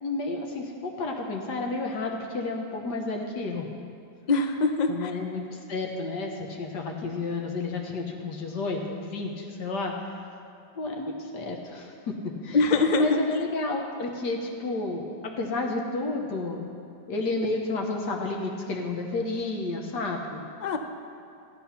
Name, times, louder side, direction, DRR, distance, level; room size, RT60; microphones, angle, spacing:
voice 1, 0.0-3.7 4.9-9.9 10.7-12.1 12.4-12.6 13.0-16.7 17.1-20.4, left 3 dB, 70° left, 1 dB, 1.6 m, -31 dB
voice 2, 4.3-5.1 12.5-13.2 20.6-20.8, left 3 dB, 55° left, 6 dB, 0.4 m, -23 dB
13.5 x 8.4 x 5.8 m, 2.5 s
omnidirectional pair, 1.9 m